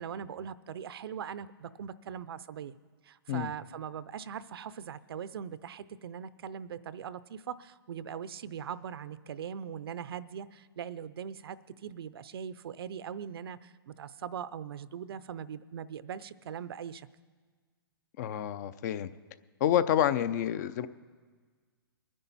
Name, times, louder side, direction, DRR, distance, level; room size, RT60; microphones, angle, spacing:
voice 1, 0.0-2.8 3.0-17.1, right 8 dB, 70° right, 16 dB, 0.6 m, -41 dB
voice 2, 18.2-19.1 19.6-20.9, left 10 dB, 45° left, 15 dB, 0.6 m, -28 dB
22.5 x 10.0 x 4.1 m, 1.5 s
hypercardioid pair, 145°, 13 cm